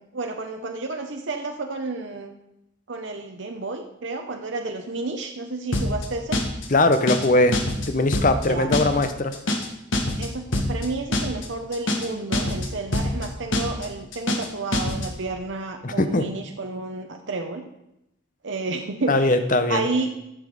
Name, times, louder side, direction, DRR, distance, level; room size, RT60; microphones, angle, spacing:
voice 1, 0.0-2.3 2.9-6.4 8.4-8.8 10.2-17.6 18.4-19.4 19.7-20.1, right 3 dB, 65° right, 4 dB, 0.8 m, -31 dB
sound 1, 5.7-6.1 6.3-6.7 6.9-7.3 7.5-8.5 8.7-9.1 9.3-9.7 9.9-10.3 10.5-10.9 11.1-11.5 11.7-12.1 12.3-12.7 12.9-13.3 13.5-13.9 14.1-14.5 14.7-15.1, left 1 dB, 70° left, 1.5 m, -24 dB
voice 2, 6.7-7.6 7.9-9.4 15.8-16.3 19.1-19.9, left 2 dB, 40° left, 10 dB, 0.7 m, -20 dB
14.0 x 6.0 x 4.9 m, 0.85 s
head